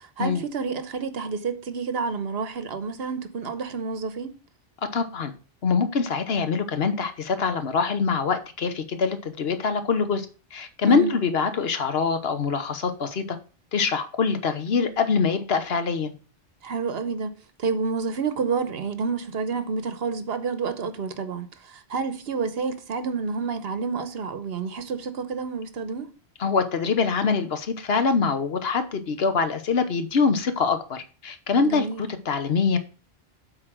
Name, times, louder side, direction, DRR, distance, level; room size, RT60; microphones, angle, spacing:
voice 1, 0.0-4.4 10.8-11.1 16.6-17.3 17.6-26.1 31.6-32.0, right 5 dB, 70° right, 1.1 m, -29 dB
voice 2, 4.9-5.3 5.6-10.3 10.5-13.4 13.7-16.1 26.4-32.8, left 5 dB, 75° left, 1.2 m, -24 dB
7.8 x 4.1 x 6.0 m
omnidirectional pair, 1.1 m